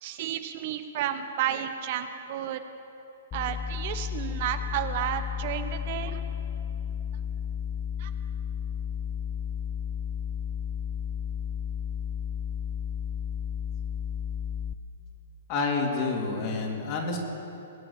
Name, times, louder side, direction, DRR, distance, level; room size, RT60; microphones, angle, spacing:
voice 1, 0.0-2.6 3.3-6.2 8.0-8.1, right 10 dB, 50° right, 9 dB, 0.9 m, -32 dB
sound 1, 3.3-14.7, left 8 dB, 25° left, 0.8 m, -33 dB
voice 2, 15.5-17.2, left 4 dB, 40° left, 0 dB, 3.1 m, -28 dB
21.0 x 8.9 x 7.3 m, 2.9 s
hypercardioid pair, 120°, 0 cm